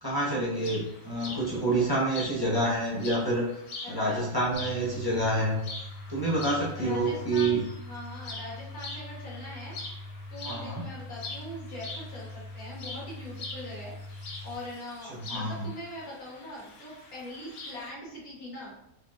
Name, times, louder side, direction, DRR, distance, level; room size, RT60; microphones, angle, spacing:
voice 1, 0.0-3.5 3.9-5.6 6.1-7.6 10.4-10.8 15.1-15.7, right 2 dB, 20° right, -6 dB, 0.7 m, -28 dB
sound 1, 0.5-17.9, left 3 dB, 55° left, 1.0 m, -44 dB
voice 2, 3.8-4.3 6.7-13.9 14.4-18.7, left 1 dB, 85° left, -6 dB, 2.1 m, -42 dB
sound 2, 4.5-14.5, left 2 dB, 60° right, 0.5 m, -43 dB
4.5 x 3.5 x 2.5 m, 0.84 s
omnidirectional pair, 1.5 m